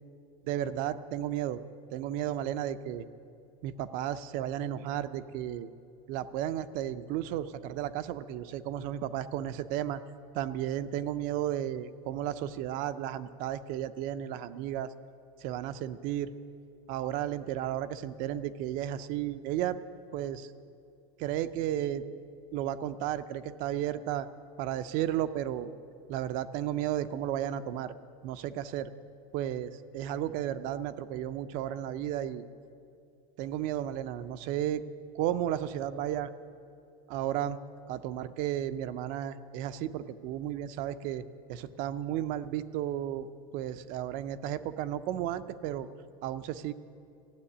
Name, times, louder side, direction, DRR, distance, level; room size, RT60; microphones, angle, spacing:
voice 1, 0.4-1.6 1.9-3.0 3.6-5.7 6.1-10.0 10.3-14.9 15.4-16.3 16.9-19.8 20.1-20.5 21.2-22.0 22.5-24.3 24.6-25.7 26.1-27.9 28.2-28.9 29.3-32.5 33.4-34.8 35.1-36.3 37.1-37.6 37.9-41.2 41.5-43.3 43.5-45.9 46.2-46.7, right 11 dB, 45° right, 12 dB, 0.5 m, -33 dB
15.0 x 7.6 x 9.9 m, 2.6 s
supercardioid pair, 160°, 19 cm